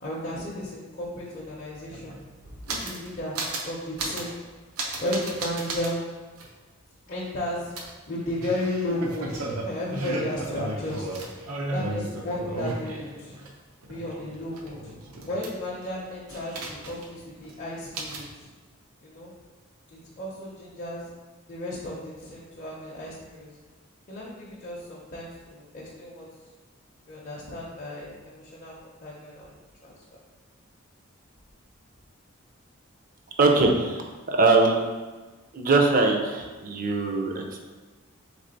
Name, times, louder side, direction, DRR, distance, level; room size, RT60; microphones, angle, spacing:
voice 1, 0.0-2.2 2.7-3.4 3.7-4.3 5.0-6.0 7.1-7.7 8.1-11.2 11.7-13.4 13.9-14.9 15.3-18.3 19.0-19.3 19.9-21.1 21.5-23.5 24.1-26.3 27.1-28.7 29.0-29.5 29.8-29.9, left 1 dB, 40° left, -6 dB, 0.6 m, -34 dB
sound 1, 1.4-1.5 1.7-3.1 3.4-3.7 4.0-4.3 4.8-5.9 6.4-6.5 7.8-13.5 13.8-15.8 16.3-17.2 17.4-17.5 17.9-18.3, right 2 dB, 90° right, 0.7 m, -34 dB
voice 2, 33.4-34.8 35.5-37.7, right 3 dB, 40° right, 2 dB, 0.5 m, -22 dB
3.5 x 3.3 x 3.9 m, 1.3 s
head